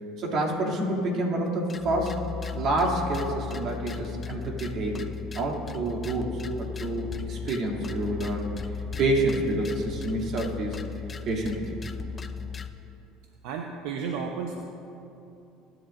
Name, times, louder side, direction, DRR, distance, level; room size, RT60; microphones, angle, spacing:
voice 1, 0.2-2.2 2.5-5.1 5.3-8.5 9.0-10.8 11.2-11.6, right 1 dB, 55° right, -1 dB, 2.7 m, -28 dB
sound 1, 1.7-12.7, left 6 dB, 25° left, 0.6 m, -36 dB
voice 2, 13.4-14.6, right 5 dB, 75° right, 2 dB, 0.9 m, -33 dB
23.5 x 10.5 x 2.6 m, 2.8 s
supercardioid pair, 100°, 0 cm